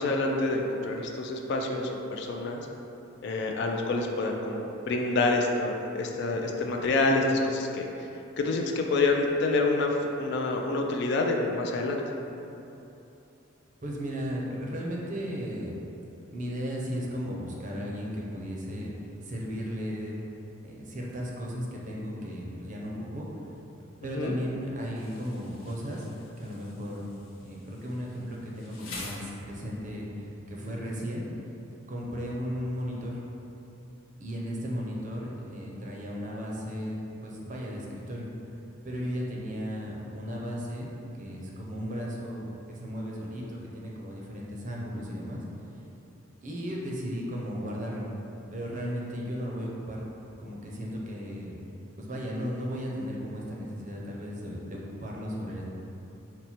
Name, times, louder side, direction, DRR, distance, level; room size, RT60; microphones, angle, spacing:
voice 1, 0.0-2.7 3.2-8.1 8.4-12.0 24.1-24.4, left 2 dB, 55° left, 2 dB, 0.3 m, -27 dB
voice 2, 13.8-15.8 16.3-18.9 19.2-20.2 20.6-23.3 24.0-26.1 26.4-27.1 27.4-31.3 31.9-33.2 34.2-37.0 37.2-38.3 38.8-45.4 46.4-48.1 48.5-50.0 50.4-51.6 52.0-55.6, equal, 40° right, -3 dB, 0.5 m, -35 dB
Insect, 25.0-29.9, left 3 dB, 80° left, 0.7 m, -47 dB
4.2 x 2.1 x 4.2 m, 2.9 s
head